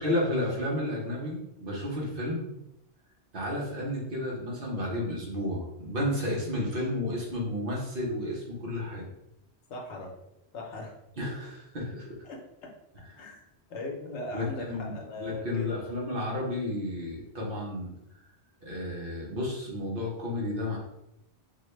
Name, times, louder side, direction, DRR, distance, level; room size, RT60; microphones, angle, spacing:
voice 1, 0.0-2.5 3.3-9.0 11.2-12.2 14.3-17.9 18.6-20.8, left 1 dB, 55° right, -3 dB, 1.1 m, -32 dB
voice 2, 9.7-10.1 10.5-10.9 12.2-12.4 13.2-13.4 13.7-15.7, left 2 dB, 80° left, 0 dB, 1.1 m, -38 dB
4.5 x 2.2 x 3.1 m, 0.85 s
omnidirectional pair, 1.1 m